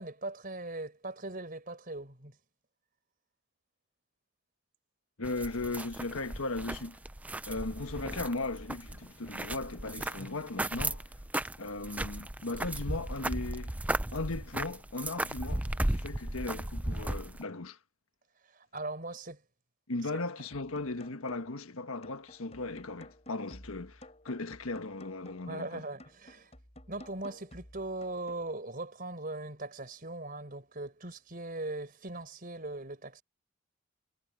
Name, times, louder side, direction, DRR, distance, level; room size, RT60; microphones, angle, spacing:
voice 1, 0.0-2.4 10.2-10.3 18.5-19.4 25.5-26.5 26.9-33.2, right 2 dB, 40° right, 4.6 m, -40 dB
voice 2, 5.2-7.0 7.5-11.0 11.6-13.7 14.1-17.8 19.9-25.8, left 2 dB, 85° left, 1.5 m, -37 dB
sound 1, 5.2-17.4, right 1 dB, 5° right, 0.4 m, -36 dB
sound 2, 20.5-21.7 22.0-25.6 26.0-28.5, left 1 dB, 30° left, 7.4 m, -53 dB
head